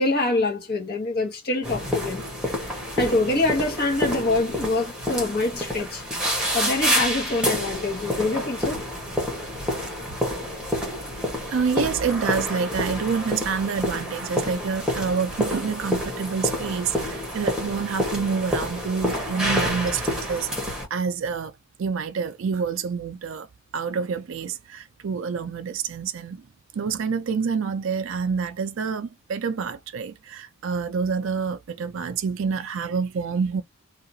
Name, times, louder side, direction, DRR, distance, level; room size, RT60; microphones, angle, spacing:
voice 1, 0.0-2.2 3.0-6.0 6.5-8.8, left 2 dB, 45° left, 1.2 m, -25 dB
sound 1, 1.6-20.9, equal, 5° right, 1.0 m, -28 dB
voice 2, 11.5-21.5 21.8-23.5 23.7-26.4 26.7-33.6, right 5 dB, 60° right, 0.4 m, -27 dB
2.8 x 2.4 x 2.6 m
head